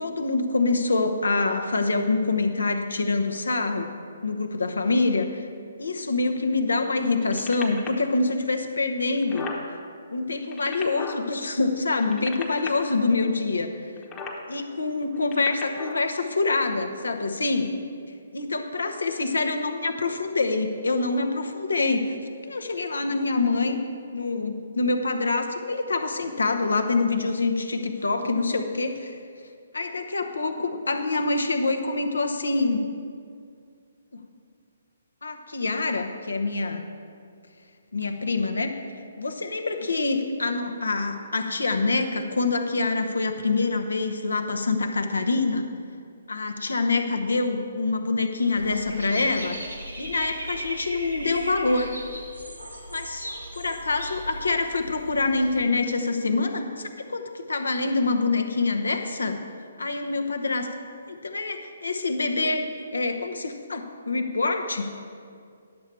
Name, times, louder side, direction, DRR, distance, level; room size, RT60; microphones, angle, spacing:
voice 1, 0.0-3.9 4.2-5.4 5.8-9.5 10.1-13.8 14.5-17.8 18.3-22.2 22.5-23.8 24.1-29.2 29.7-32.9 34.1-34.2 35.2-36.9 37.9-38.7 39.2-45.7 46.3-49.6 50.0-51.9 52.9-59.4 59.8-60.7 61.1-62.7 62.9-65.0, left 3 dB, 75° left, 6 dB, 0.8 m, -25 dB
sound 1, 7.2-8.0 8.7-8.8 9.0-9.6 10.3-11.2 11.9-12.7 14.0-14.4 15.1-16.0 16.7-16.8, left 4 dB, 20° left, 1.0 m, -36 dB
Dog / Bird, 48.6-55.6, right 1 dB, 85° right, 1.8 m, -38 dB
10.5 x 6.9 x 4.6 m, 2.3 s
figure-of-eight pair, 135°, 0 cm